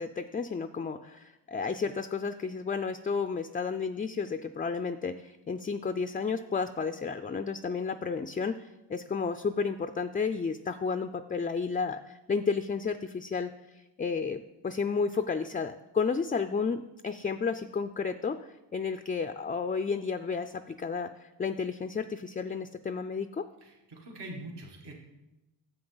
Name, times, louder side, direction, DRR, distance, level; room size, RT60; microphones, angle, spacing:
voice 1, 0.0-13.5 14.0-23.4, left 5 dB, 20° left, 10 dB, 0.3 m, -32 dB
voice 2, 23.6-24.9, right 2 dB, 70° right, -1 dB, 1.7 m, -43 dB
9.7 x 7.4 x 3.9 m, 1.0 s
cardioid pair, 75°, 43 cm